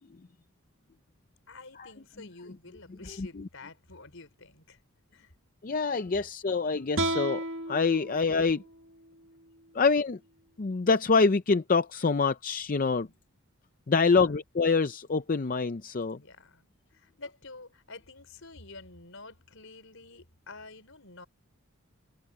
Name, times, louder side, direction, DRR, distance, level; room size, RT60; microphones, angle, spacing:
voice 1, 1.5-4.8 5.1-5.3 13.1-13.2 14.0-14.4 16.2-21.3, left 3 dB, 65° left, 5.0 m, -49 dB
voice 2, 5.6-8.6 9.7-10.2 10.6-13.1 13.9-16.2, left 4 dB, 40° left, 0.5 m, -26 dB
sound 1, 6.9-10.1, right 1 dB, 60° right, 2.1 m, -35 dB
head